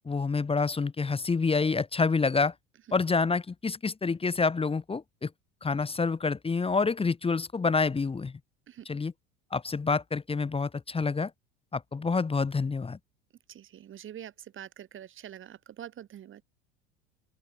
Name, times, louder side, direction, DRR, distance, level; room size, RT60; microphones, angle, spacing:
voice 1, 0.0-2.5 2.9-5.3 5.6-8.3 8.8-9.1 9.5-11.3 11.7-13.0, left 4 dB, 15° left, 1.7 m, -27 dB
voice 2, 13.5-16.4, right 10 dB, 35° right, 2.1 m, -45 dB
open air
hypercardioid pair, 75°, 33 cm